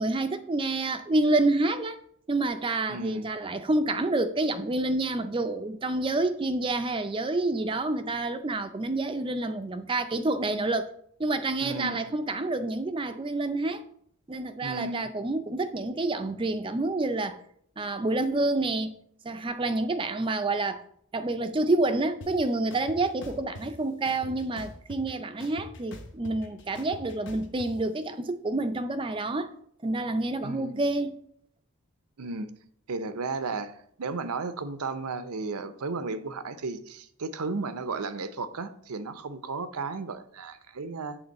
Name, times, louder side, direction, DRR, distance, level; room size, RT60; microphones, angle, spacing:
voice 1, 0.0-2.0 2.3-10.9 11.2-13.8 14.3-17.4 17.8-18.9 19.2-20.8 21.1-29.5 29.8-31.2, right 2 dB, 20° right, 9 dB, 0.4 m, -28 dB
voice 2, 2.9-3.3 11.6-12.1 14.6-15.1 30.4-30.8 32.2-32.5 32.9-41.2, right 3 dB, 90° right, 12 dB, 0.7 m, -34 dB
sound 1, 22.2-22.3 22.7-23.7 24.1-25.1 25.4-27.7, left 1 dB, 55° left, 1.0 m, -43 dB
7.9 x 3.7 x 6.6 m, 0.66 s
head